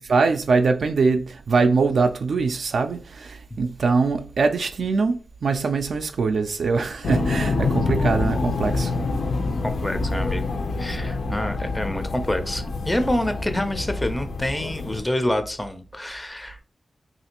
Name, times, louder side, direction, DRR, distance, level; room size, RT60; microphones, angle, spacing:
voice 1, 0.0-9.2, right 4 dB, 75° right, 0.3 m, -23 dB
sound 1, 7.0-15.0, left 3 dB, 85° left, 0.4 m, -26 dB
voice 2, 9.6-10.5 10.8-16.6, left 1 dB, 15° left, 0.4 m, -27 dB
3.1 x 2.5 x 2.8 m
wide cardioid pair, 100°, 0 cm